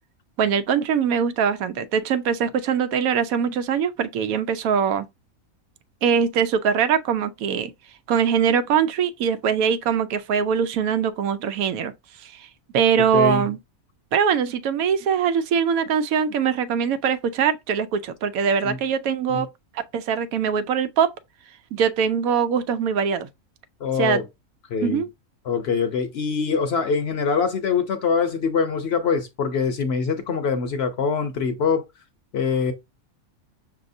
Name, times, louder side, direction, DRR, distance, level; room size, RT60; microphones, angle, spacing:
voice 1, 0.4-5.1 6.0-7.7 8.1-11.9 12.2-12.5 12.7-13.6 14.1-19.5 19.9-21.1 21.7-23.3 24.0-24.2 24.8-25.1, right 7 dB, 90° right, 1.0 m, -22 dB
voice 2, 13.0-13.5 18.6-18.8 19.3-19.5 23.8-24.3 24.7-25.0 25.4-31.9 32.3-32.7, left 5 dB, 60° left, 0.8 m, -24 dB
6.0 x 2.8 x 2.5 m
omnidirectional pair, 1.5 m